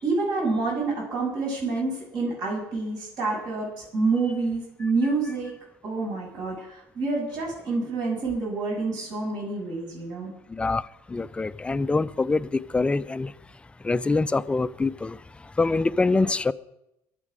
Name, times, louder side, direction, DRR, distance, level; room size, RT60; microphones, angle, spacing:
voice 1, 0.0-5.5 5.8-10.3, right 3 dB, 60° right, 7.0 m, -28 dB
voice 2, 10.5-13.3 13.8-16.5, left 3 dB, 15° left, 0.5 m, -25 dB
22.5 x 8.3 x 4.9 m
supercardioid pair, 105°, 8 cm